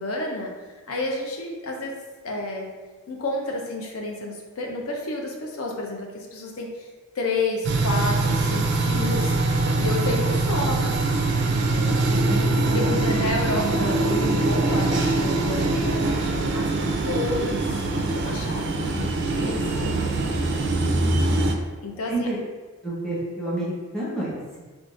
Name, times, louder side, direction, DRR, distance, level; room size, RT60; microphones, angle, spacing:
voice 1, 0.0-2.7 3.1-6.9 7.1-11.0 11.3-12.0 12.7-17.9 18.1-19.1 19.4-20.2 21.1-21.5 21.8-22.3, left 2 dB, 70° left, 0 dB, 0.6 m, -31 dB
sound 1, 7.6-21.5, right 2 dB, 50° right, 0.3 m, -23 dB
voice 2, 12.1-12.5 18.4-19.2 22.1-22.4 22.8-24.6, right 1 dB, 5° left, -9 dB, 0.8 m, -30 dB
3.7 x 2.5 x 2.4 m, 1.3 s
head